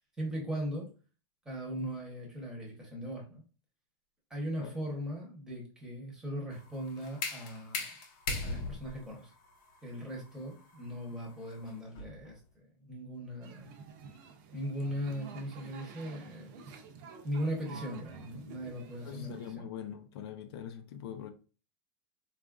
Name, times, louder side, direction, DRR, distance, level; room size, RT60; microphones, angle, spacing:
voice 1, 0.2-0.9 1.4-3.4 4.3-7.9 8.4-9.3 9.8-13.7 14.5-16.7 17.2-19.7, equal, 5° right, 0.9 m, -39 dB
sound 1, 6.5-12.3, left 3 dB, 55° left, 0.8 m, -40 dB
sound 2, 13.4-19.5, right 5 dB, 50° right, 0.6 m, -50 dB
voice 2, 19.0-21.3, left 9 dB, 80° left, 0.5 m, -42 dB
4.0 x 2.5 x 2.3 m
supercardioid pair, 165°, 13 cm